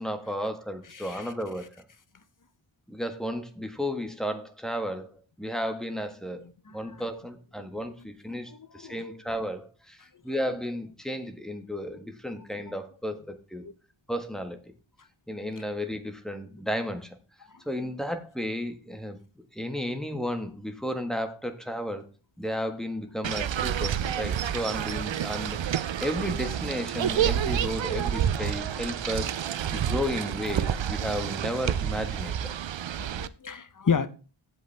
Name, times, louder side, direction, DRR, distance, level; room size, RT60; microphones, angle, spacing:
voice 1, 0.0-1.7 2.9-6.4 6.7-13.6 14.1-14.6 15.3-17.1 17.6-22.1 22.4-29.3 29.7-32.5, equal, ahead, 1.6 m, -33 dB
voice 2, 0.9-1.3 6.7-6.9 8.3-9.0 13.6-13.7 28.4-28.5 33.0-34.1, left 6 dB, 40° left, 1.0 m, -31 dB
sound 1, 23.2-33.3, right 9 dB, 65° right, 0.6 m, -29 dB
15.5 x 5.5 x 3.5 m
wide cardioid pair, 95°, 49 cm